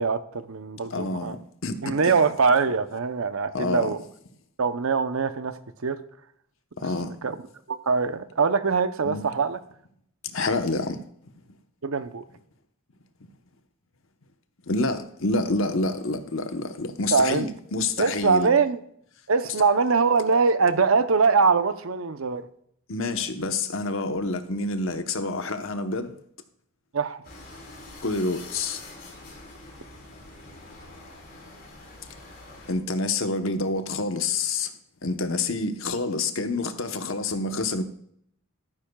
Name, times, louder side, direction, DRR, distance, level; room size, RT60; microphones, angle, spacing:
voice 1, 0.0-1.3 1.8-4.0 4.6-6.0 7.2-7.4 7.7-9.6 11.8-12.2 17.1-17.5 18.0-18.8 19.3-22.5 26.9-27.2, right 4 dB, 75° right, 0.7 m, -23 dB
voice 2, 0.9-2.1 3.5-3.9 6.8-7.1 9.0-9.2 10.3-11.0 14.7-18.5 22.9-26.1 28.0-28.8 32.7-34.7 35.0-37.8, left 3 dB, 65° left, 1.0 m, -28 dB
sound 1, 27.2-32.7, left 2 dB, 45° left, 4.8 m, -45 dB
13.5 x 12.0 x 2.3 m
head